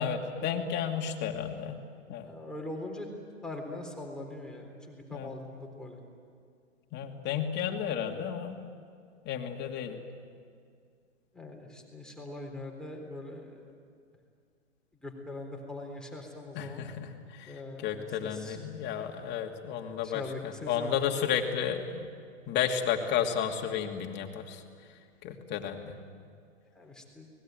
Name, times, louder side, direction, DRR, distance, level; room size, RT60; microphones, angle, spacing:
voice 1, 0.0-1.8 2.1-2.3 5.1-5.3 6.9-8.6 9.3-10.0 16.5-17.1 17.4-17.5 17.8-22.1 22.5-24.6 25.2-25.9, left 8 dB, 30° left, 3 dB, 2.6 m, -32 dB
voice 2, 2.2-3.1 3.4-6.0 11.3-13.6 15.0-16.9 17.5-18.6 20.0-21.3 26.8-27.3, left 2 dB, ahead, 0 dB, 3.8 m, -42 dB
29.0 x 20.5 x 9.3 m, 2.2 s
hypercardioid pair, 125°, 37 cm